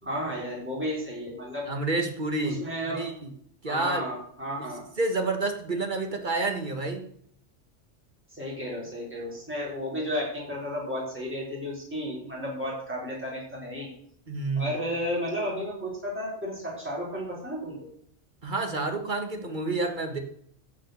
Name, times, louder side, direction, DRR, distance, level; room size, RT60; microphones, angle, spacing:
voice 1, 0.0-1.7 2.4-3.1 3.7-4.8 8.3-13.9 14.6-17.8, equal, 10° right, -5 dB, 4.2 m, -33 dB
voice 2, 1.7-3.1 3.6-4.0 5.0-7.1 14.3-14.7 18.4-20.2, right 3 dB, 40° right, 5 dB, 1.6 m, -29 dB
15.0 x 5.9 x 6.4 m, 0.67 s
omnidirectional pair, 1.2 m